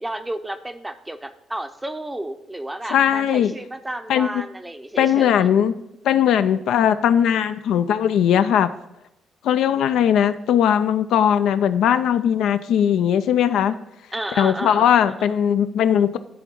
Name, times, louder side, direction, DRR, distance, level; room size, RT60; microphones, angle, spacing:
voice 1, 0.0-5.5 14.1-15.3, right 1 dB, 10° right, 9 dB, 0.5 m, -32 dB
voice 2, 2.9-3.5 4.1-4.4 5.0-5.8 6.0-8.7 9.4-13.8 14.4-16.2, left 9 dB, 80° left, 10 dB, 0.3 m, -19 dB
10.5 x 3.6 x 6.1 m, 0.87 s
cardioid pair, 90°, 0 cm